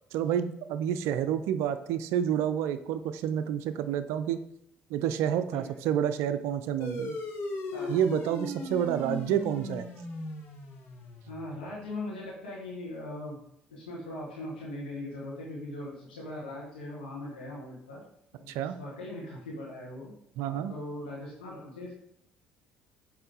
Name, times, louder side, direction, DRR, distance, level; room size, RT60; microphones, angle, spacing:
voice 1, 0.1-4.4 4.9-7.2 7.9-9.9 18.5-18.8 20.4-20.7, right 9 dB, 65° right, 11 dB, 0.4 m, -29 dB
sound 1, 6.8-11.7, left 1 dB, 55° left, 1.5 m, -37 dB
voice 2, 11.3-13.4 13.7-18.0 18.4-20.1 20.4-22.0, left 1 dB, 85° left, -6 dB, 1.4 m, -40 dB
7.8 x 3.2 x 3.9 m, 0.73 s
figure-of-eight pair, 50°, 5 cm